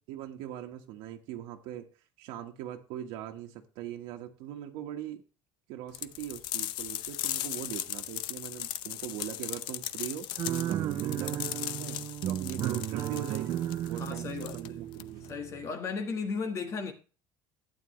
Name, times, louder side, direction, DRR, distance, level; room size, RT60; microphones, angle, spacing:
voice 1, 0.1-1.9 2.2-5.2 5.7-10.3 10.7-11.5 11.8-15.2, right 11 dB, 75° right, 1.5 m, -41 dB
sound 1, 5.9-15.3, left 14 dB, 65° left, 0.6 m, -38 dB
sound 2, 10.4-15.7, right 12 dB, 40° right, 0.4 m, -34 dB
voice 2, 10.7-11.2 14.0-14.7 15.3-16.9, left 5 dB, 35° left, 1.4 m, -36 dB
12.0 x 9.3 x 3.2 m
cardioid pair, 160°, 9 cm